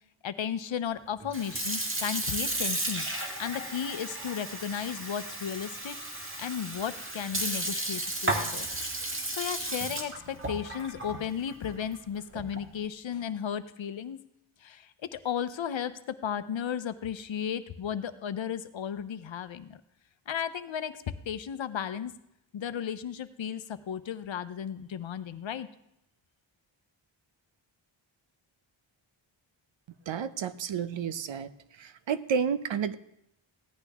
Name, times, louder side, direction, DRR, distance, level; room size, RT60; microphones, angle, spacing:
voice 1, 0.2-3.0 3.4-6.0 6.4-9.0 9.4-14.2 14.6-19.8 20.3-22.1 22.5-25.7, left 8 dB, 65° left, 12 dB, 0.8 m, -34 dB
Sink (filling or washing) / Fill (with liquid), 1.2-12.7, right 1 dB, 25° right, 1.6 m, -34 dB
voice 2, 30.1-31.5 31.8-32.9, right 7 dB, 70° right, 14 dB, 0.7 m, -31 dB
16.0 x 11.0 x 3.6 m, 0.79 s
wide cardioid pair, 105°, 48 cm